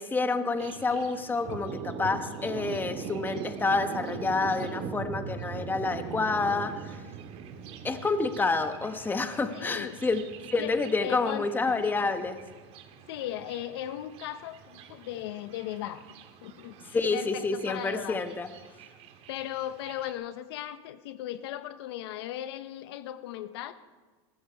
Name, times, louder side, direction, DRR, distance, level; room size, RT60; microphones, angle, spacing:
voice 1, 0.0-7.0 7.8-10.2 10.5-12.4 16.9-18.5, left 3 dB, 15° left, 9 dB, 1.1 m, -28 dB
Thunder, 0.6-20.1, right 6 dB, 50° right, 1.9 m, -42 dB
voice 2, 9.5-10.0 10.6-11.8 13.1-16.0 16.4-18.4 18.7-18.8 19.3-23.7, left 12 dB, 80° left, 12 dB, 0.8 m, -37 dB
20.5 x 13.5 x 4.7 m, 1.3 s
supercardioid pair, 120°, 13 cm